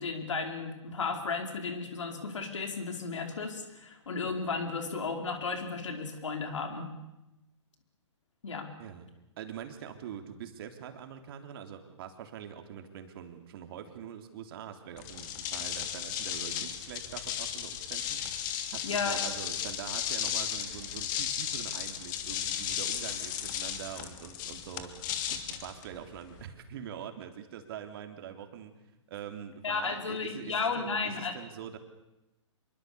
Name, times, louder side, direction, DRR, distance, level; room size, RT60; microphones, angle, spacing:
voice 1, 0.0-6.9 8.4-8.7 18.8-19.2 29.6-31.3, left 4 dB, 75° left, 5 dB, 4.8 m, -34 dB
voice 2, 9.4-18.2 18.7-24.9 25.3-28.7 29.1-31.8, right 9 dB, 50° right, 6 dB, 3.5 m, -44 dB
sound 1, 15.0-26.4, left 9 dB, 40° left, 2.7 m, -35 dB
26.5 x 23.0 x 7.1 m, 0.95 s
hypercardioid pair, 130°, 16 cm